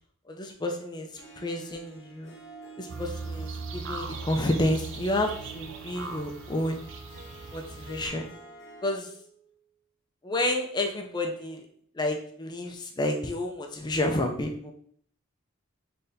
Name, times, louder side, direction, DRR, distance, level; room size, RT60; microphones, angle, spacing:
voice 1, 0.3-2.4 2.8-6.8 7.5-8.3 8.8-9.1 10.2-11.7 11.9-14.7, left 1 dB, 20° left, 3 dB, 0.4 m, -30 dB
Harp, 1.1-9.0, right 4 dB, 55° left, 0.9 m, -48 dB
sound 1, 2.9-8.1, right 4 dB, 65° right, 0.4 m, -39 dB
Wind instrument woodwind instrument, 5.2-9.7, right 2 dB, 70° left, 0.7 m, -54 dB
3.9 x 3.3 x 2.7 m, 0.62 s
head